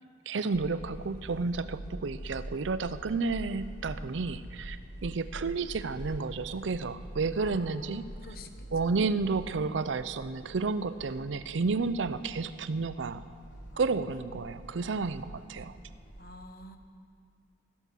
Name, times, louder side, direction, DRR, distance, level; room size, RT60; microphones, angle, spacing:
voice 1, 0.3-8.1 8.7-13.2 13.8-15.8, right 4 dB, 85° right, 13 dB, 0.5 m, -31 dB
sound 1, 0.5-16.3, equal, 85° left, 2.6 m, -45 dB
voice 2, 7.4-8.7 13.7-13.9 16.2-16.8, left 2 dB, 55° left, 7 dB, 1.0 m, -49 dB
13.0 x 11.0 x 6.8 m, 2.2 s
head